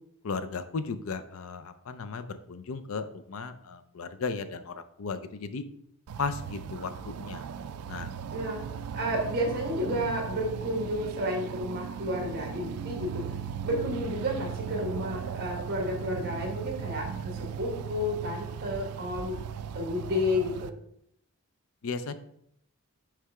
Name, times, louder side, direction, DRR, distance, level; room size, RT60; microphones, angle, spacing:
voice 1, 0.2-5.6 6.2-7.5 7.9-8.1 21.8-22.1, left 4 dB, 70° left, 11 dB, 0.5 m, -35 dB
sound 1, 6.1-20.7, right 7 dB, 90° right, 0.4 m, -38 dB
voice 2, 8.9-13.2 13.6-19.4 19.7-20.7, left 1 dB, 45° right, 0 dB, 1.4 m, -31 dB
6.6 x 3.3 x 4.8 m, 0.71 s
head